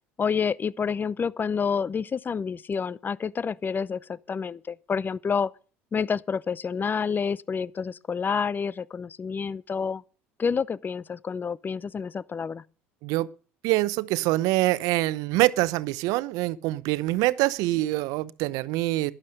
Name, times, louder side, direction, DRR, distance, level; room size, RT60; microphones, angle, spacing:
voice 1, 0.2-5.5 5.9-10.0 10.4-12.6, left 6 dB, 30° left, 0.7 m, -28 dB
voice 2, 13.6-19.1, right 18 dB, 65° right, 0.9 m, -25 dB
12.0 x 11.5 x 6.6 m
hypercardioid pair, 70°, 7 cm